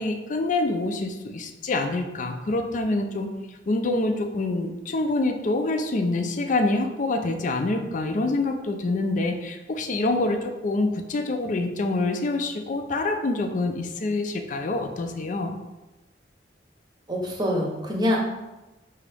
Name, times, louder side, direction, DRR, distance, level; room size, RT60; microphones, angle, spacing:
voice 1, 0.0-3.3 3.7-15.6, left 2 dB, 45° left, 6 dB, 0.4 m, -26 dB
voice 2, 17.1-18.2, left 1 dB, 25° right, -1 dB, 0.8 m, -25 dB
4.9 x 2.7 x 3.4 m, 1.1 s
head